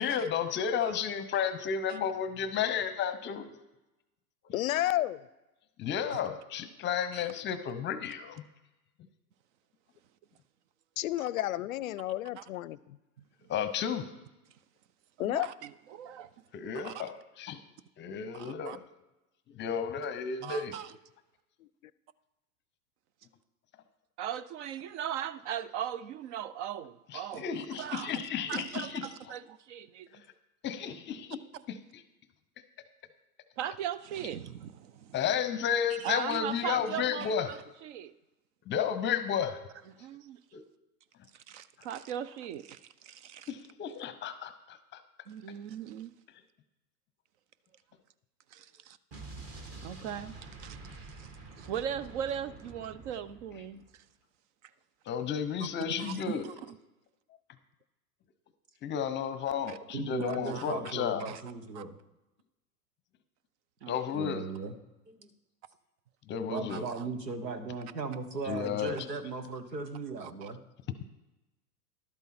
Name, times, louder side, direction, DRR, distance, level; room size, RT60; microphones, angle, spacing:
voice 1, 0.0-3.5 4.4-4.5 5.8-8.4 13.5-14.1 16.5-17.6 18.0-18.8 19.5-20.7 27.1-29.1 30.6-31.4 31.7-31.8 35.1-37.5 38.7-39.6 40.5-40.6 43.5-45.0 55.1-56.5 58.8-61.3 63.9-64.5 66.3-66.9 68.5-69.0, left 8 dB, 25° left, 11 dB, 0.8 m, -32 dB
voice 2, 4.5-5.3 11.0-13.0 15.2-15.5 21.6-21.7, left 15 dB, 60° left, 19 dB, 0.5 m, -31 dB
voice 3, 15.2-16.3 16.8-17.1 18.3-18.8 20.4-20.9 24.2-27.5 27.8-28.2 28.5-30.2 33.6-35.2 36.0-38.1 40.0-40.4 41.3-43.5 45.3-46.1 48.5-49.0 49.6-50.8 51.2-51.3 51.6-53.8 56.0-56.8 59.7-59.8 60.4-60.9 61.3-61.4 61.7-61.8 63.8-63.9 66.7-67.0 70.2-70.5, right 9 dB, 45° right, 16 dB, 0.7 m, -39 dB
Explosion, 49.1-53.9, right 3 dB, 30° right, 1.8 m, -47 dB
voice 4, 59.9-62.0 64.1-64.8 65.1-65.3 66.5-70.6, right 4 dB, 90° right, 9 dB, 1.3 m, -37 dB
11.5 x 8.2 x 4.3 m, 1.0 s
hypercardioid pair, 100°, 48 cm